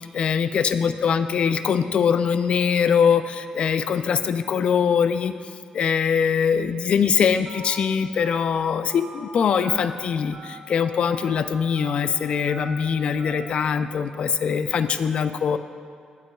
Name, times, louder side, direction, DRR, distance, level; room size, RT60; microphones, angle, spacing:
voice 1, 0.1-5.3 5.7-10.4 10.7-15.6, left 7 dB, 50° left, 11 dB, 0.3 m, -22 dB
Telephone, 7.5-7.7 8.2-8.4 8.9-9.2 9.6-9.9 10.3-10.6 11.0-11.3 11.8-12.0 12.5-12.7 13.2-13.5, right 3 dB, 80° right, 1.6 m, -41 dB
16.5 x 5.8 x 2.3 m, 2.1 s
wide cardioid pair, 165°, 2 cm